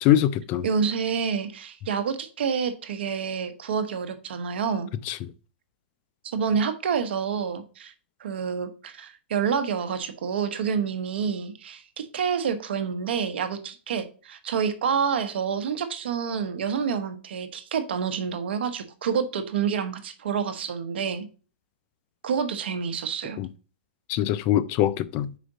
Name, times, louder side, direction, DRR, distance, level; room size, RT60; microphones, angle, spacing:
voice 1, 0.0-0.7 5.1-5.3 23.4-23.5 24.1-25.3, left 12 dB, 30° left, 0.3 m, -23 dB
voice 2, 0.6-4.9 6.2-7.9 8.2-21.3 22.2-23.4, right 6 dB, 70° right, 1.1 m, -28 dB
5.0 x 5.0 x 3.9 m
hypercardioid pair, 155°, 6 cm